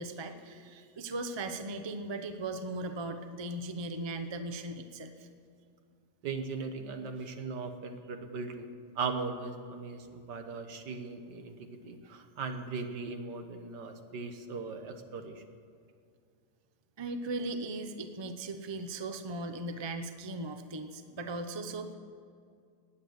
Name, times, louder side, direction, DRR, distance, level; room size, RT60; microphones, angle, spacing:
voice 1, 0.0-5.3 17.0-21.9, right 2 dB, 35° right, 7 dB, 0.4 m, -38 dB
voice 2, 6.2-8.7 9.0-15.4, right 4 dB, 70° right, 6 dB, 1.7 m, -38 dB
19.5 x 8.7 x 6.6 m, 2.3 s
omnidirectional pair, 1.9 m